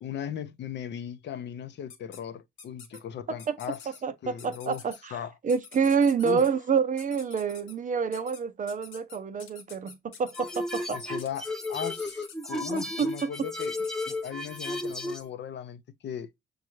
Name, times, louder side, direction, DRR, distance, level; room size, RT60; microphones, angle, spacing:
voice 1, 0.0-3.9 4.2-4.8 5.1-5.3 6.2-6.5 10.9-13.8 14.1-16.3, left 9 dB, 60° left, 0.6 m, -37 dB
sound 1, 1.9-2.2 2.6-3.0 3.4-4.0 4.4-5.0 5.5-6.5 7.0-7.7 8.1-8.4 8.7-14.3, left 6 dB, 85° left, 1.1 m, -48 dB
voice 2, 4.0-5.2 5.4-11.2 12.7-13.3, right 6 dB, 40° right, 0.6 m, -28 dB
sound 2, 10.3-15.3, left 1 dB, 5° left, 0.7 m, -33 dB
6.3 x 2.3 x 3.0 m
cardioid pair, 90°, 20 cm